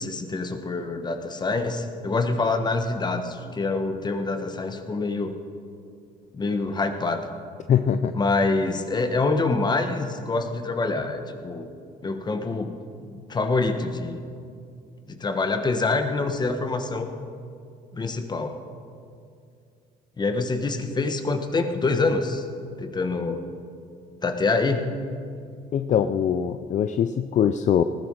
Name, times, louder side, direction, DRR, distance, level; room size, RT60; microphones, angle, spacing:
voice 1, 0.0-5.4 6.3-7.3 8.1-11.7 12.0-12.7 13.1-14.2 15.1-17.1 17.9-18.6 20.2-22.4 22.8-23.4 24.2-25.0, left 3 dB, 25° left, 7 dB, 1.4 m, -26 dB
voice 2, 7.7-8.2 25.7-27.8, left 8 dB, 45° left, 10 dB, 0.5 m, -22 dB
19.0 x 15.0 x 4.8 m, 2.4 s
cardioid pair, 110°, 17 cm